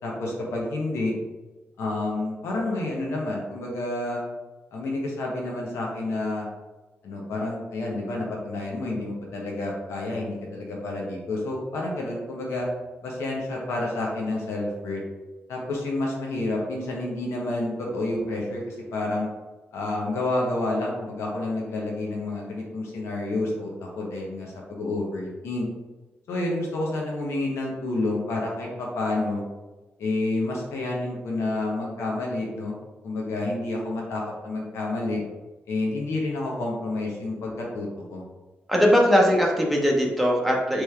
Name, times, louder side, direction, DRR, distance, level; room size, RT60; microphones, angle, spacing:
voice 1, 0.0-1.1 1.8-4.2 4.7-6.5 7.0-12.7 13.0-15.0 15.5-19.3 19.7-25.7 26.3-29.4 30.0-32.7 33.0-35.2 35.7-38.2, left 2 dB, 90° left, -2 dB, 0.8 m, -29 dB
voice 2, 38.7-40.8, equal, ahead, -2 dB, 0.8 m, -20 dB
3.4 x 3.1 x 3.2 m, 1.2 s
cardioid pair, 95°, 4 cm